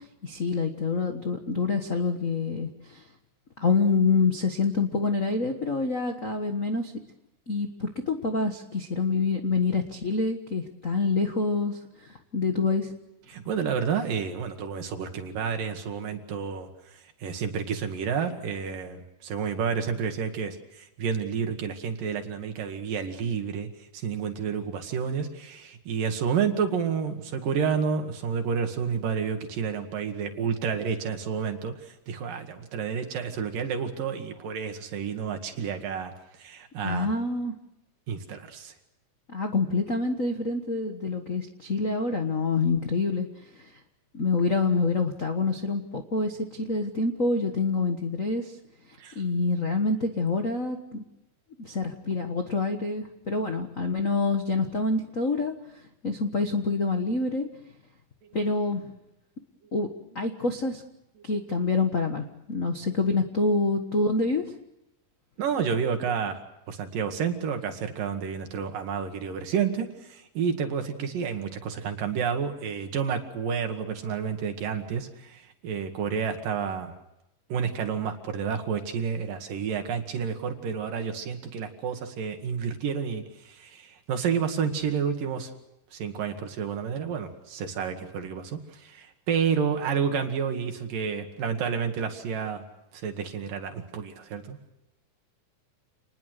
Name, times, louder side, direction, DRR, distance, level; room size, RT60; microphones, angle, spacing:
voice 1, 0.2-3.0 3.6-6.9 7.5-12.9 36.8-37.5 39.3-43.3 43.5-43.7 44.1-48.5 49.1-51.0 51.6-55.5 56.0-57.5 58.3-58.9 59.7-59.9 60.1-60.8 61.2-64.5, left 3 dB, 55° left, 5 dB, 0.8 m, -26 dB
voice 2, 13.3-36.1 36.4-37.1 38.1-38.7 49.0-49.2 58.2-58.4 65.4-66.4 66.7-76.9 77.5-85.5 85.9-92.6 92.9-94.6, right 6 dB, 80° right, 5 dB, 3.8 m, -30 dB
28.5 x 20.5 x 6.6 m, 0.89 s
omnidirectional pair, 3.9 m